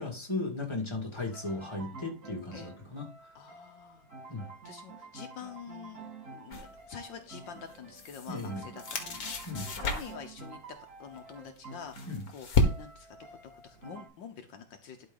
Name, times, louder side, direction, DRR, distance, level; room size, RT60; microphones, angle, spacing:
voice 1, 0.0-3.1 4.3-4.4 8.3-8.6 9.4-9.7 12.1-12.2, left 2 dB, 15° left, 1 dB, 2.2 m, -36 dB
sound 1, 1.2-14.1, right 3 dB, 40° right, 6.4 m, -49 dB
voice 2, 3.4-4.1 4.7-8.8 9.1-10.6 11.0-13.1 13.6-15.1, left 7 dB, 70° left, 6 dB, 1.6 m, -47 dB
sound 2, 6.5-6.7 7.7-8.5 8.8-10.3 11.5-13.1, left 2 dB, 50° left, 1.8 m, -31 dB
11.5 x 5.0 x 3.9 m, 0.32 s
omnidirectional pair, 2.1 m